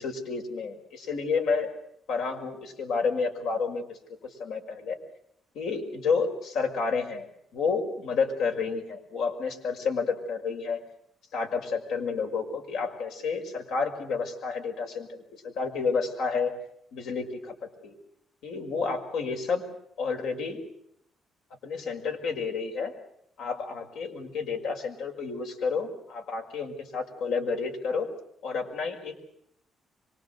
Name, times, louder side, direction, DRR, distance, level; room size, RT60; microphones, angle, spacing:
voice 1, 0.0-1.7 2.1-4.0 4.4-5.0 5.5-7.3 7.5-10.8 11.3-16.5 16.9-17.5 17.8-17.9 18.4-19.6 20.0-20.6 21.6-22.9 23.4-28.1 28.4-29.3, left 5 dB, 80° left, 4 dB, 5.9 m, -30 dB
25.5 x 23.0 x 8.2 m, 0.74 s
cardioid pair, 90°, 0 cm